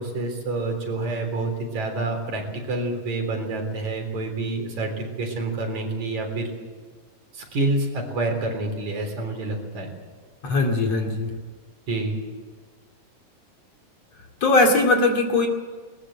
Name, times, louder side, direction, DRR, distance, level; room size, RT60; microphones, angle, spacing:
voice 1, 0.0-6.5 7.3-9.9 11.9-12.2, right 2 dB, 60° right, 3 dB, 5.0 m, -28 dB
voice 2, 10.4-11.3 14.4-15.5, left 2 dB, 50° left, 2 dB, 3.5 m, -20 dB
21.0 x 19.5 x 7.6 m, 1.5 s
omnidirectional pair, 3.8 m